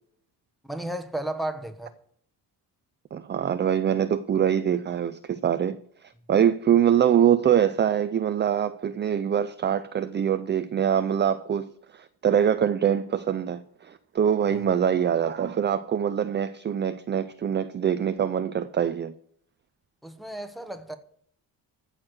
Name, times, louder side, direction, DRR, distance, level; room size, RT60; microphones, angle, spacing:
voice 1, 0.7-1.9 14.4-14.6 20.0-21.0, right 1 dB, ahead, 1.2 m, -33 dB
voice 2, 3.1-5.8 6.3-19.1, right 9 dB, 30° right, 0.4 m, -24 dB
14.5 x 6.5 x 6.4 m
cardioid pair, 150°, 40 cm